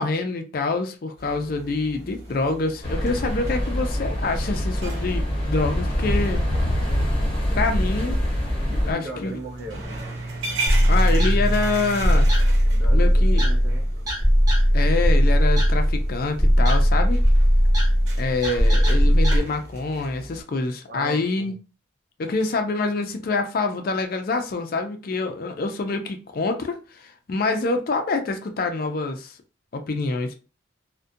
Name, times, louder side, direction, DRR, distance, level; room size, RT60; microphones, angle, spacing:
voice 1, 0.0-6.4 7.5-8.2 8.8-9.3 10.9-12.3 12.9-13.5 14.7-17.2 18.2-21.5 22.2-29.4 29.7-30.3, left 3 dB, 45° left, 0.4 m, -26 dB
sound 1, 1.2-20.4, right 2 dB, 80° right, 0.9 m, -37 dB
sound 2, 2.8-8.9, equal, 30° left, 0.8 m, -24 dB
voice 2, 8.6-9.9 12.7-13.9 20.9-21.6, right 1 dB, 55° right, 0.6 m, -37 dB
sound 3, 10.7-19.4, equal, 20° right, 0.8 m, -18 dB
2.4 x 2.1 x 2.6 m
head